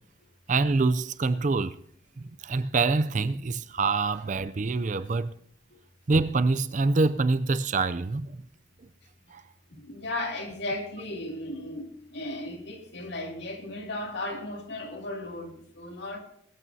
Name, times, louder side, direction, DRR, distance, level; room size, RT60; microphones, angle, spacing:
voice 1, 0.5-1.8 2.2-5.3 6.1-8.4 9.3-9.4, right 3 dB, 40° right, 0.4 m, -25 dB
voice 2, 9.8-16.2, left 1 dB, 55° left, 2.5 m, -35 dB
22.0 x 13.5 x 2.8 m
head